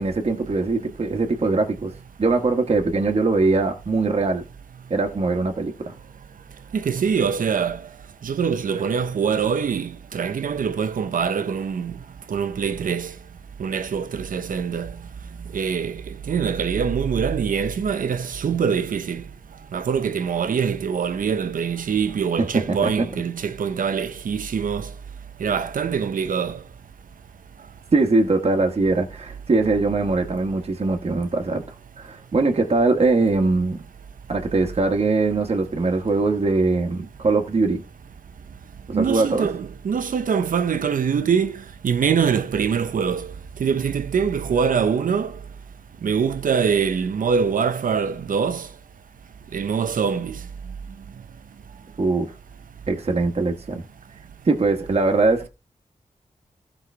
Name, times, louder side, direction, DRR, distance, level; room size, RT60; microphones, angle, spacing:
voice 1, 0.0-4.4 4.9-5.9 22.7-22.9 27.9-33.8 34.3-37.8 38.9-39.5 52.0-52.3 52.9-53.8 54.5-55.5, right 3 dB, 50° right, 1.5 m, -21 dB
voice 2, 6.7-7.8 8.2-12.0 12.3-13.1 13.6-14.9 15.5-19.2 19.7-24.9 25.4-26.6 38.9-41.6 41.8-43.3 43.6-45.4 46.0-48.7 49.5-50.4, right 6 dB, 85° right, 0.9 m, -24 dB
15.5 x 5.6 x 3.4 m
wide cardioid pair, 90°, 14 cm